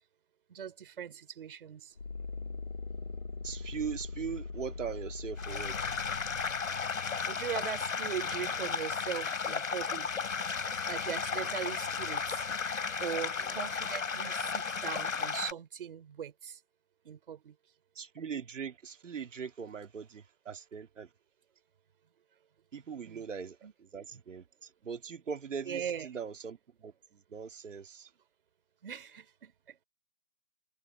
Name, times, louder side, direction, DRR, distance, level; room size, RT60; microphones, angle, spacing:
voice 1, 0.5-1.9 7.3-10.1 10.9-12.5 13.0-16.6 17.0-17.5 23.0-23.2 23.6-23.7 25.7-26.1 28.8-29.8, right 8 dB, 35° right, 3.7 m, -40 dB
sound 1, 2.0-6.9, left 4 dB, 30° left, 0.7 m, -41 dB
voice 2, 3.4-5.9 18.0-21.1 22.7-23.6 23.9-24.4 24.8-26.6 26.8-26.9 27.3-28.1, right 6 dB, 55° right, 2.4 m, -40 dB
sound 2, 5.4-15.5, left 5 dB, 60° left, 4.0 m, -34 dB
hypercardioid pair, 170°, 44 cm